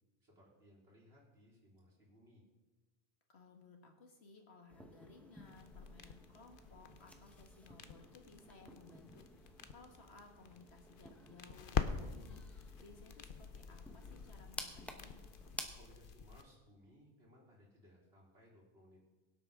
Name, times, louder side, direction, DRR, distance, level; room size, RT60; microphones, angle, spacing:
voice 1, 0.2-2.4 15.7-19.0, equal, 75° right, -5 dB, 4.1 m, -63 dB
voice 2, 3.3-15.2, left 3 dB, 90° left, 3 dB, 1.9 m, -60 dB
sound 1, 4.7-15.7, equal, ahead, 1.0 m, -53 dB
sound 2, 5.4-16.4, left 6 dB, 60° left, 0.9 m, -46 dB
23.5 x 8.2 x 3.7 m, 1.2 s
omnidirectional pair, 1.1 m